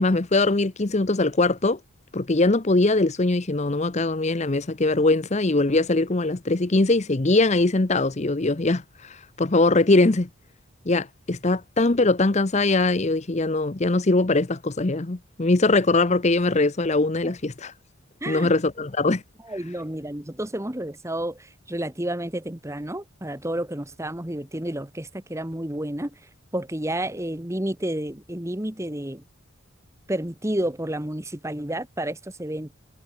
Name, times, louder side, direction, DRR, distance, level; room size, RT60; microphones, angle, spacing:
voice 1, 0.0-1.8 2.1-10.3 10.9-17.7 18.3-19.2, left 2 dB, 30° left, 0.7 m, -21 dB
voice 2, 19.4-26.2 26.5-29.2 30.1-32.7, right 1 dB, 15° right, 1.3 m, -30 dB
head